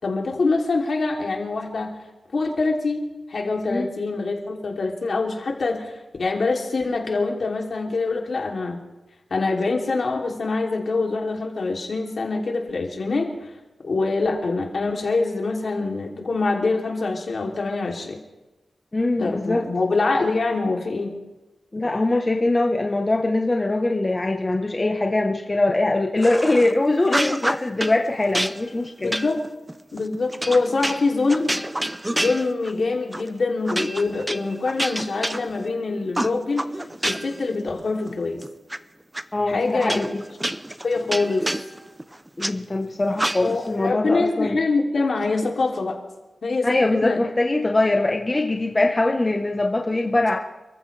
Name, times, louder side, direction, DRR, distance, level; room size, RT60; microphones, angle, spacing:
voice 1, 0.0-1.9 2.3-8.8 9.3-13.5 13.8-18.2 19.2-21.1 29.0-29.4 29.9-31.6 32.1-36.7 37.0-38.4 39.5-40.0 40.8-41.5 43.4-46.0 46.4-47.2, left 3 dB, 55° left, 0 dB, 3.0 m, -24 dB
voice 2, 18.9-19.6 21.7-29.1 39.3-40.2 42.4-44.6 46.6-50.4, left 2 dB, 25° left, 1 dB, 1.1 m, -22 dB
sound 1, 26.2-26.7 27.0-28.0 28.3-32.8 33.1-33.3 33.7-35.8 36.1-37.4 37.8-38.8 39.1-39.2 39.8-42.5 43.2-43.7, right 1 dB, 10° right, 0.6 m, -28 dB
29.5 x 14.5 x 3.4 m, 1.1 s
wide cardioid pair, 125°, 0 cm